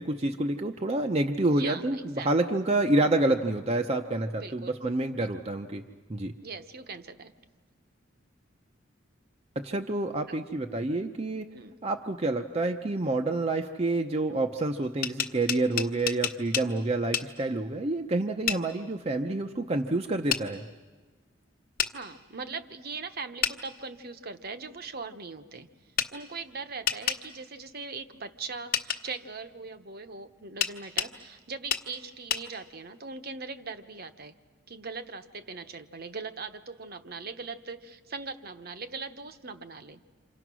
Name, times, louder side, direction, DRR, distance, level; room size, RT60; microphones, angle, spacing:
voice 1, 0.0-5.8 6.1-6.3 9.6-11.5 11.8-20.6, right 2 dB, 30° right, 4 dB, 0.7 m, -28 dB
voice 2, 1.4-1.8 2.1-2.3 4.4-4.8 6.4-7.3 10.3-10.4 11.5-11.7 21.9-25.7 26.1-34.3 34.7-40.0, right 4 dB, 50° right, 9 dB, 1.1 m, -40 dB
sound 1, 14.8-16.7 17.1-17.3 18.5-18.6 20.3-20.4 21.8-21.9 23.4-23.6 26.0-26.1 26.9-27.2 28.7-29.0 30.6-31.1 31.7-31.9 32.3-32.4, left 9 dB, 45° left, 1.2 m, -29 dB
28.5 x 26.5 x 6.2 m, 1.4 s
head